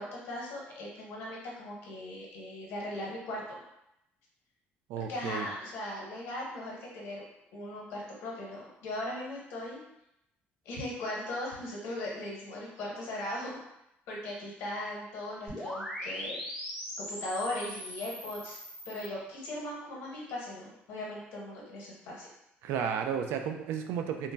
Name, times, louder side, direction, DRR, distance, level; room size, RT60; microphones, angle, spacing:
voice 1, 0.0-3.6 5.0-7.2 7.5-9.8 10.6-13.6 14.1-16.4 17.0-18.6 18.8-22.3, left 1 dB, 85° left, -3 dB, 0.9 m, -38 dB
voice 2, 4.9-5.5 22.6-24.3, right 7 dB, 90° right, 5 dB, 0.3 m, -33 dB
sound 1, 15.5-19.1, left 1 dB, 10° right, 0.5 m, -40 dB
3.8 x 2.1 x 2.2 m, 0.83 s
cardioid pair, 170°, 4 cm